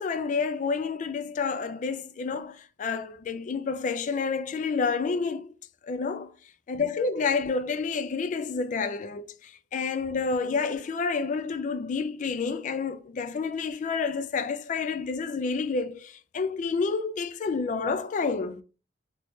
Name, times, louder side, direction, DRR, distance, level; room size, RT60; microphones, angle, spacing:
voice 1, 0.0-5.5 5.8-6.3 6.7-18.6, left 4 dB, 40° left, 0.3 m, -29 dB
3.2 x 2.8 x 3.0 m
head